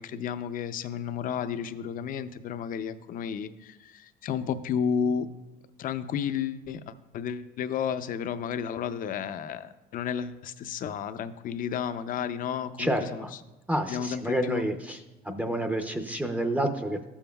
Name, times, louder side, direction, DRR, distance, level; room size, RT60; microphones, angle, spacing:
voice 1, 0.0-5.3 5.8-13.3 13.9-14.6, left 7 dB, 55° left, 12 dB, 0.5 m, -32 dB
voice 2, 12.8-13.3 13.7-15.0 15.2-17.1, right 1 dB, 10° right, 5 dB, 0.5 m, -29 dB
13.0 x 7.1 x 2.3 m, 1.0 s
cardioid pair, 110°, 17 cm